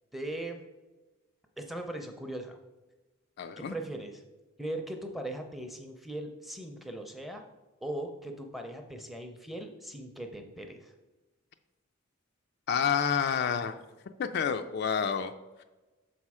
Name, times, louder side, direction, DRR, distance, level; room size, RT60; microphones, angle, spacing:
voice 1, 0.1-0.6 1.6-2.6 3.6-4.2 4.6-7.4 7.8-10.9, right 1 dB, ahead, 4 dB, 0.5 m, -39 dB
voice 2, 3.4-3.7 12.7-13.8 14.2-15.3, left 7 dB, 50° left, 8 dB, 0.3 m, -29 dB
6.6 x 4.2 x 4.8 m, 1.2 s
head